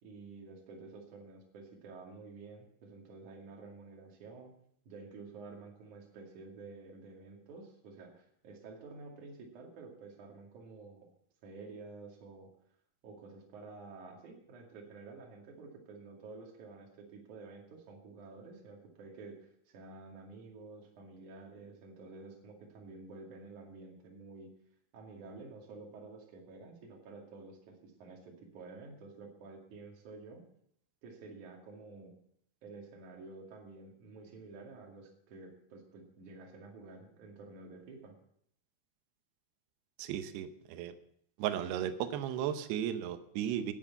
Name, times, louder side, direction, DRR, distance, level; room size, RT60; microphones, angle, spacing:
voice 1, 0.0-4.5 4.9-11.1 11.4-12.5 13.0-24.5 24.9-30.4 31.0-32.1 32.6-38.2, right 3 dB, 50° right, 0 dB, 3.4 m, -50 dB
voice 2, 40.0-41.0 41.4-43.7, right 10 dB, 75° right, 9 dB, 2.8 m, -35 dB
10.5 x 9.9 x 6.9 m, 0.69 s
omnidirectional pair, 5.2 m